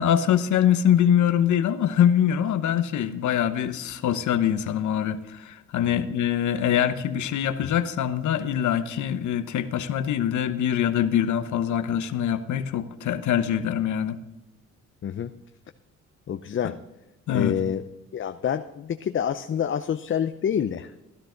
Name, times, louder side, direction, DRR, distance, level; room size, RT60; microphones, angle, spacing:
voice 1, 0.0-14.2 16.6-16.7 17.3-17.6, left 9 dB, 75° left, 1.0 m, -24 dB
voice 2, 16.3-16.8 17.3-17.8 18.1-20.9, left 8 dB, 40° left, 0.6 m, -27 dB
15.5 x 12.0 x 3.9 m
cardioid pair, 90°, 30 cm